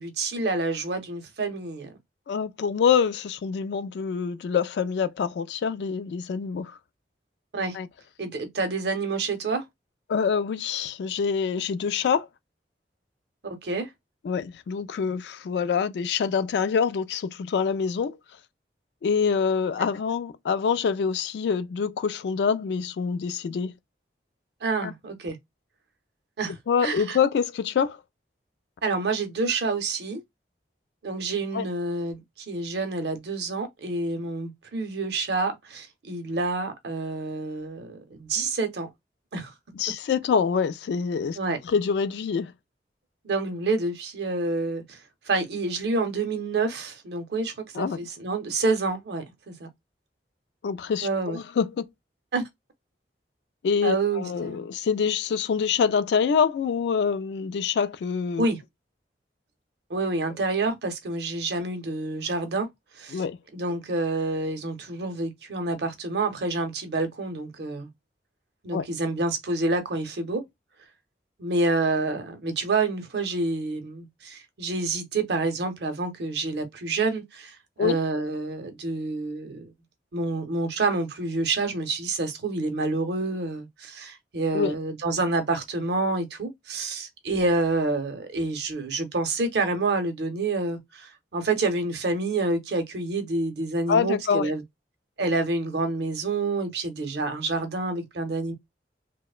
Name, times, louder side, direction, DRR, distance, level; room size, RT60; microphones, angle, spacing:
voice 1, 0.0-1.9 7.5-7.8 8.2-9.6 13.4-13.9 19.8-19.9 24.6-25.4 26.4-27.2 28.8-30.2 31.0-32.2 32.5-38.9 39.3-39.5 41.4-41.6 43.2-45.0 45.3-49.7 51.0-51.4 52.3-52.4 53.8-54.6 58.4-58.6 59.9-62.7 63.0-63.2 63.5-67.9 68.6-70.4 71.4-79.7 80.1-94.6 95.2-98.5, right 3 dB, 65° right, 0.6 m, -28 dB
voice 2, 2.3-6.8 7.7-7.9 10.1-12.3 14.2-18.2 19.0-23.7 24.8-24.9 26.7-28.0 31.5-31.7 39.8-41.4 41.6-42.5 47.7-48.0 50.6-51.8 53.6-58.5 63.1-63.4 68.7-68.9 77.8-78.0 84.5-84.8 93.9-94.5, left 6 dB, 70° left, 0.3 m, -25 dB
2.8 x 2.0 x 2.4 m
head